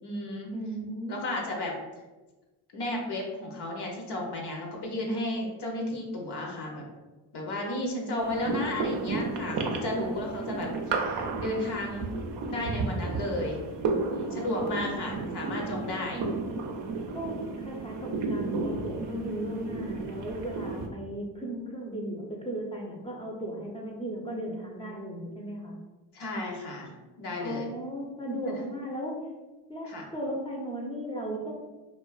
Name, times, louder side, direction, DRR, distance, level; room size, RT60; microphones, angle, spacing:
voice 1, 0.0-0.5 1.1-1.8 2.7-6.8 7.3-12.1 12.5-13.6 14.1-16.2 26.1-26.9 27.2-27.7 28.5-28.6 29.8-30.1, left 1 dB, 55° left, 0 dB, 0.7 m, -33 dB
voice 2, 0.5-1.4 14.7-15.1 16.1-16.6 17.1-25.8 27.4-29.3 29.7-31.5, equal, 10° left, -1 dB, 0.5 m, -36 dB
sound 1, 8.2-20.9, right 3 dB, 60° right, 0.5 m, -33 dB
2.4 x 2.2 x 2.3 m, 1.2 s
supercardioid pair, 60°, 48 cm